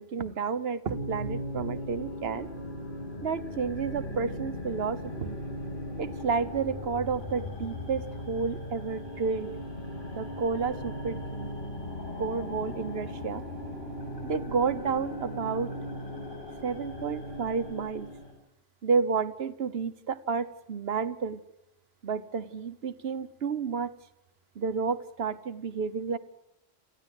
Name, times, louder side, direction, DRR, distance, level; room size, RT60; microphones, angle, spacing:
voice 1, 0.0-2.5 3.2-5.4 6.0-9.5 10.1-11.5 12.2-13.4 14.2-15.7 16.6-18.1 18.8-21.4 22.0-23.9 24.5-26.2, right 5 dB, 70° right, 12 dB, 1.3 m, -31 dB
sound 1, 0.9-18.3, left 1 dB, 50° left, 6.1 m, -38 dB
28.0 x 14.5 x 7.9 m, 0.83 s
omnidirectional pair, 1.1 m